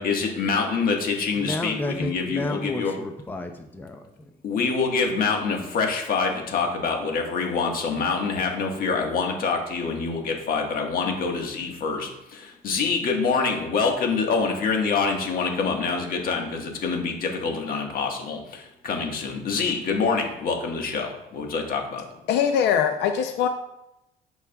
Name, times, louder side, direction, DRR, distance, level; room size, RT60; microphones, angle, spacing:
voice 1, 0.0-2.9 4.4-22.0, left 4 dB, 60° left, 2 dB, 1.5 m, -26 dB
voice 2, 1.4-4.1, left 1 dB, 10° left, 5 dB, 0.5 m, -31 dB
voice 3, 22.3-23.5, left 8 dB, 80° left, 6 dB, 0.5 m, -22 dB
11.0 x 4.7 x 2.3 m, 0.87 s
cardioid pair, 110°, 17 cm